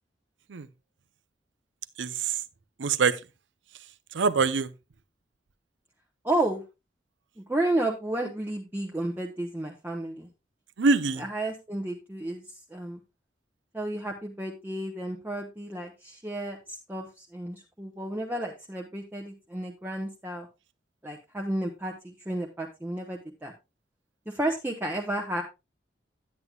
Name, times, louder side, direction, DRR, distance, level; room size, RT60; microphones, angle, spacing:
voice 1, 2.0-2.4 2.8-3.2 4.1-4.7 10.8-11.2, right 4 dB, 80° right, 0.6 m, -24 dB
voice 2, 6.2-6.6 7.4-10.3 11.2-12.4 12.7-13.0 13.7-16.6 16.9-20.5 21.0-23.5 24.3-25.4, right 1 dB, 10° right, 0.8 m, -32 dB
9.5 x 9.5 x 2.3 m
head